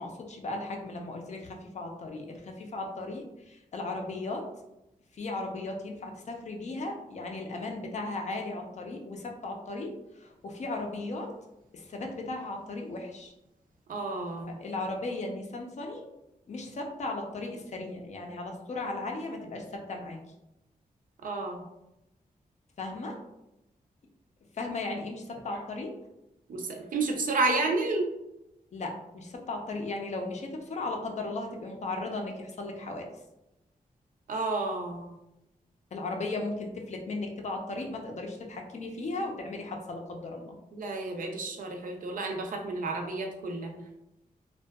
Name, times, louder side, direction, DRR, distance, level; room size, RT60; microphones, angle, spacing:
voice 1, 0.0-4.5 5.1-11.3 11.7-13.3 14.6-16.1 16.5-20.2 22.8-23.2 24.5-25.9 28.7-33.1 35.9-40.6, left 2 dB, 50° left, 2 dB, 0.4 m, -36 dB
voice 2, 13.9-14.6 21.2-21.7 26.5-28.1 34.3-35.1 40.7-43.8, right 3 dB, 65° right, 3 dB, 0.4 m, -31 dB
2.6 x 2.2 x 2.2 m, 0.89 s
wide cardioid pair, 155°, 15 cm